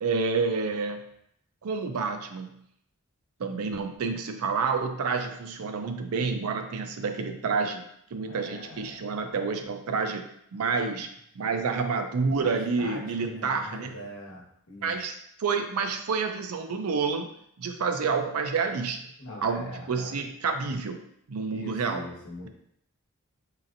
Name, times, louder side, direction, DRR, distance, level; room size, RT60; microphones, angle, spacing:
voice 1, 0.0-1.0 1.6-2.6 3.4-7.8 8.1-10.2 10.5-11.1 11.4-14.0 14.8-17.3 17.6-19.0 19.4-21.0 21.3-22.1, right 4 dB, 80° right, 6 dB, 0.5 m, -29 dB
voice 2, 8.3-9.0 12.4-14.9 19.2-20.1 21.5-22.5, left 1 dB, 70° left, -2 dB, 1.1 m, -42 dB
4.9 x 2.9 x 2.6 m, 0.72 s
head